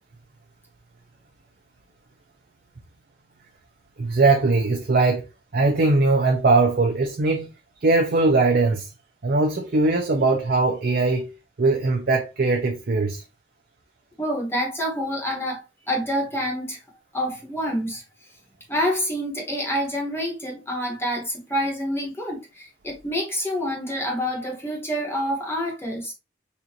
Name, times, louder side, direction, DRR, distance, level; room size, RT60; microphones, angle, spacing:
voice 1, 4.0-5.3 5.5-7.5 7.8-8.9 9.2-11.3 11.6-13.2, right 3 dB, 50° right, 0.5 m, -20 dB
voice 2, 14.2-15.6 15.9-16.8 17.1-18.0 18.7-26.1, equal, 15° left, 1.2 m, -27 dB
4.2 x 2.5 x 2.8 m
head